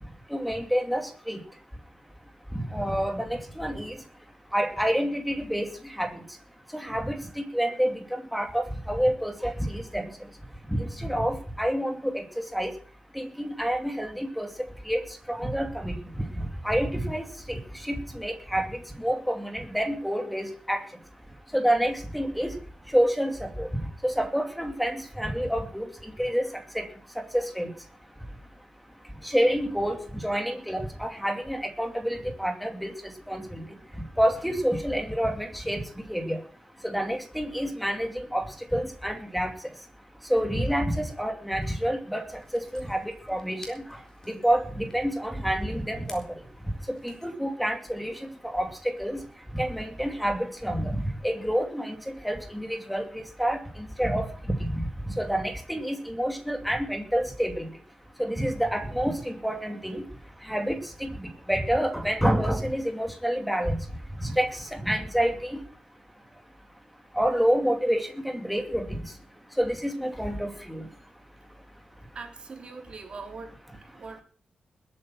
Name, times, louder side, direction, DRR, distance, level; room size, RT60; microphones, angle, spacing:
voice 1, 0.3-1.4 2.5-3.9 4.5-6.1 6.7-10.1 10.7-12.7 13.1-14.5 14.9-15.0 15.3-16.0 16.6-18.7 19.0-20.8 21.5-22.5 22.9-23.7 24.0-26.9 27.2-27.7 29.2-32.9 33.3-33.6 34.2-35.8 36.1-36.4 36.8-38.5 38.7-39.7 40.3-42.2 42.5-43.8 44.3-46.2 46.9-49.2 49.5-54.7 55.1-57.7 58.2-60.0 60.4-63.8 64.2-65.6 67.2-69.0 69.6-70.8, equal, ahead, 5 dB, 2.5 m, -28 dB
sound 1, 42.2-47.3, left 2 dB, 25° left, 4.1 m, -53 dB
voice 2, 72.1-74.2, right 4 dB, 40° right, 4 dB, 3.8 m, -42 dB
21.0 x 8.6 x 6.2 m, 0.42 s
wide cardioid pair, 165°, 3 cm